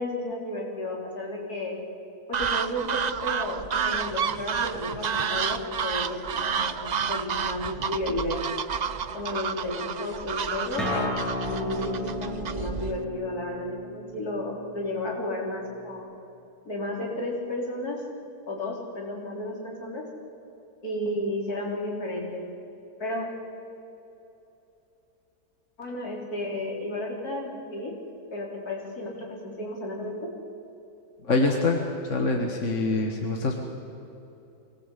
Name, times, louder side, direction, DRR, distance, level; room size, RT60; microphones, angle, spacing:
voice 1, 0.0-1.7 2.3-6.8 7.1-8.5 9.1-16.0 16.7-18.0 18.5-20.0 20.8-22.4 23.0-23.3 25.8-27.9 28.3-30.1, left 1 dB, 70° left, -2 dB, 4.3 m, -33 dB
sound 1, 2.3-13.0, right 6 dB, 65° right, 0.4 m, -30 dB
Acoustic guitar, 10.8-16.0, left 1 dB, ahead, 7.4 m, -34 dB
voice 2, 31.2-33.6, left 2 dB, 50° left, 2 dB, 1.8 m, -25 dB
24.0 x 18.0 x 8.3 m, 2.9 s
omnidirectional pair, 1.7 m